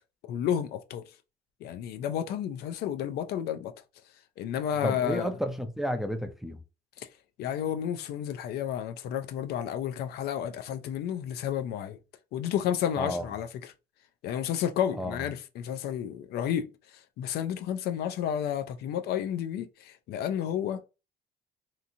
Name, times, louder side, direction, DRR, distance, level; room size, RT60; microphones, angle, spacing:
voice 1, 0.2-1.0 1.6-3.7 4.4-5.3 7.0-7.1 7.4-12.0 12.3-13.5 14.2-20.8, left 9 dB, 70° left, 0.4 m, -31 dB
voice 2, 4.8-6.6 13.0-13.3 14.9-15.2, equal, ahead, 0.4 m, -32 dB
2.8 x 2.5 x 2.6 m
cardioid pair, 110°, 17 cm